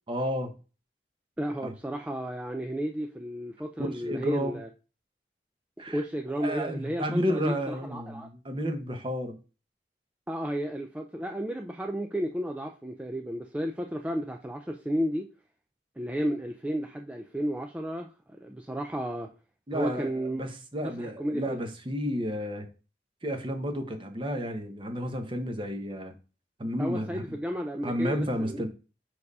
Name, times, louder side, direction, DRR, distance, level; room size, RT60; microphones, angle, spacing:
voice 1, 0.1-0.5 1.6-1.7 3.9-4.6 5.8-6.0 6.4-9.4 19.7-22.7 23.2-26.1 26.6-27.2 27.8-28.7, equal, 30° right, 1.0 m, -31 dB
voice 2, 1.4-4.7 5.8-8.3 10.3-15.3 16.0-18.1 18.4-19.3 19.7-20.4 21.0-21.6 26.8-28.7, equal, 10° right, 0.4 m, -33 dB
4.8 x 4.7 x 5.4 m
head